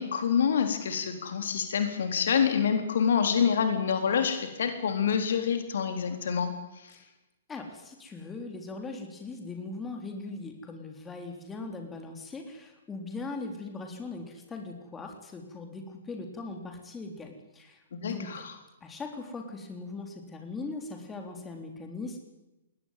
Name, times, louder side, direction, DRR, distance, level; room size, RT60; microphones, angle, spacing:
voice 1, 0.0-6.5 18.0-18.5, left 7 dB, 60° left, 6 dB, 3.8 m, -27 dB
voice 2, 7.5-18.4 18.8-22.2, left 3 dB, 15° left, 3 dB, 3.7 m, -40 dB
21.5 x 18.0 x 9.3 m, 0.97 s
figure-of-eight pair, 120°, 0 cm